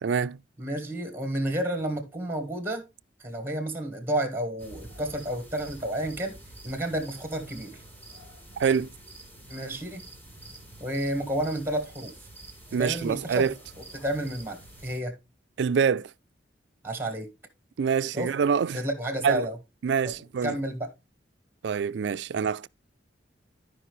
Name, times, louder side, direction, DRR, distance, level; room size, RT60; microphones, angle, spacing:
voice 1, 0.0-0.4 8.6-8.9 12.7-13.5 15.6-16.1 17.8-18.8 19.2-19.5 19.8-20.6 21.6-22.7, right 6 dB, 75° right, 0.4 m, -25 dB
voice 2, 0.6-2.8 3.2-6.4 6.6-7.8 9.5-10.0 10.8-12.1 12.8-13.5 13.9-15.1 16.8-17.3 18.1-18.3 18.7-19.6 20.0-20.1 20.4-20.9, right 1 dB, 15° right, 1.5 m, -31 dB
sound 1, 4.6-15.0, right 2 dB, 10° left, 2.5 m, -47 dB
12.5 x 5.3 x 3.1 m
head